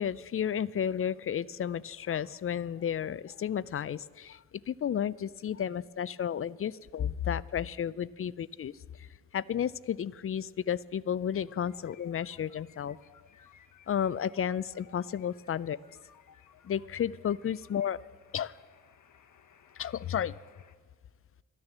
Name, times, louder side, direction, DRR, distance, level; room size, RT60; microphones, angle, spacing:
voice 1, 0.0-13.0 13.9-15.8 16.6-18.0 18.3-18.6 19.8-20.4, left 9 dB, 45° left, 19 dB, 0.4 m, -32 dB
sound 1, 11.3-20.8, left 7 dB, 65° left, 1.0 m, -60 dB
12.5 x 9.7 x 7.3 m, 1.5 s
cardioid pair, 60°, 33 cm